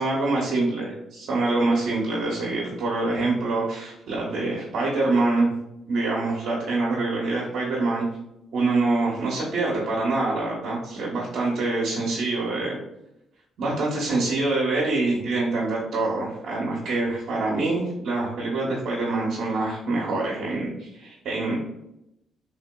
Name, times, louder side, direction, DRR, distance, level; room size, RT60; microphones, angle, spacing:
voice 1, 0.0-5.5 5.9-8.1 8.5-12.8 13.6-21.6, right 2 dB, 70° right, -4 dB, 0.7 m, -25 dB
3.3 x 2.7 x 2.2 m, 0.86 s
cardioid pair, 90°, 0 cm